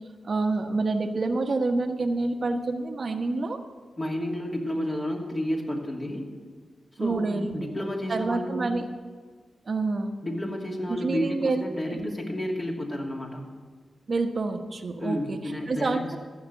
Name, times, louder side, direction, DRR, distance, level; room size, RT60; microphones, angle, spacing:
voice 1, 0.2-3.6 7.0-7.6 8.1-8.9 9.7-10.1 10.9-12.1 14.1-16.2, right 3 dB, 55° right, 6 dB, 1.2 m, -28 dB
voice 2, 4.0-6.3 7.0-8.7 10.2-13.5 15.0-16.0, equal, 30° left, -1 dB, 2.7 m, -31 dB
14.0 x 5.9 x 7.9 m, 1.5 s
supercardioid pair, 45°, 0 cm